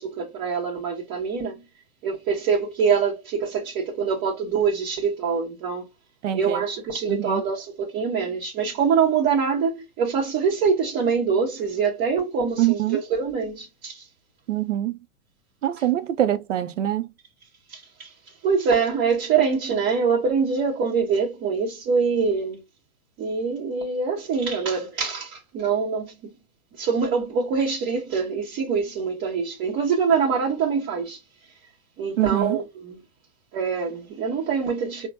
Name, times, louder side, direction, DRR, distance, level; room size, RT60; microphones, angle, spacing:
voice 1, 0.0-1.6 2.0-5.9 6.3-14.0 15.8-15.9 17.7-18.1 18.4-22.6 23.2-26.1 26.8-31.2 32.0-33.0 33.5-35.1, right 5 dB, 25° right, 1.0 m, -24 dB
voice 2, 6.2-6.6 7.1-7.4 12.6-13.0 14.5-14.9 15.6-17.1 32.2-32.6, right 12 dB, 55° right, 0.6 m, -24 dB
4.2 x 2.1 x 2.7 m
figure-of-eight pair, 115°, 44 cm